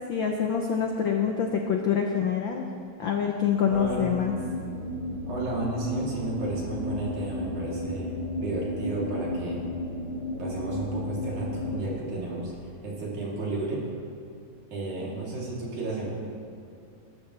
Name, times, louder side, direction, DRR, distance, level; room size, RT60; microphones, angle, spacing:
voice 1, 0.1-2.7 3.0-4.3, left 7 dB, 80° left, 2 dB, 1.1 m, -26 dB
sound 1, 3.7-11.8, left 1 dB, 50° right, 3.5 m, -33 dB
voice 2, 3.7-4.0 5.3-9.6 10.4-12.5 12.8-13.8 14.7-16.2, right 2 dB, 90° right, -5 dB, 4.6 m, -33 dB
21.0 x 13.0 x 3.3 m, 2.5 s
omnidirectional pair, 3.3 m